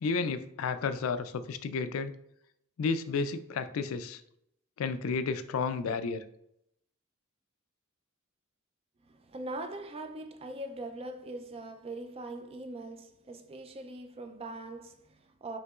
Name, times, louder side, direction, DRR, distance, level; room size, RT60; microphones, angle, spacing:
voice 1, 0.0-2.1 2.8-4.2 4.8-6.2, left 4 dB, 70° left, 0.4 m, -32 dB
voice 2, 9.1-15.6, right 2 dB, 30° right, 0.4 m, -41 dB
5.6 x 3.0 x 2.3 m
head